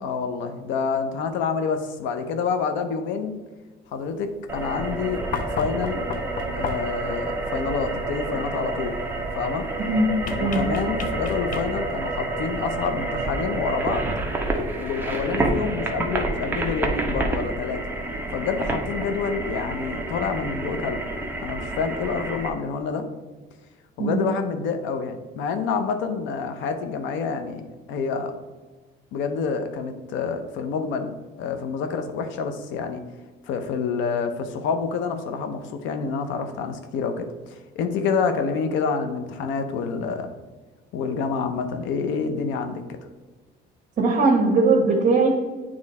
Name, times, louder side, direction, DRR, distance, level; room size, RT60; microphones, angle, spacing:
voice 1, 0.0-3.3 3.9-5.2 5.5-6.0 6.5-9.0 9.4-9.7 10.4-14.0 14.8-17.8 18.3-21.0 21.4-23.1 24.0-28.3 29.1-31.1 31.4-33.0 33.4-40.3 40.9-42.8, left 5 dB, 80° left, 7 dB, 0.8 m, -27 dB
sound 1, 4.5-22.5, right 2 dB, 10° right, 0.8 m, -29 dB
sound 2, 5.3-7.1 10.2-12.0 13.5-13.6, left 6 dB, 45° left, 0.6 m, -33 dB
voice 2, 44.0-45.3, right 3 dB, 40° right, -2 dB, 1.1 m, -19 dB
8.5 x 3.1 x 4.2 m, 1.3 s
cardioid pair, 120°, 20 cm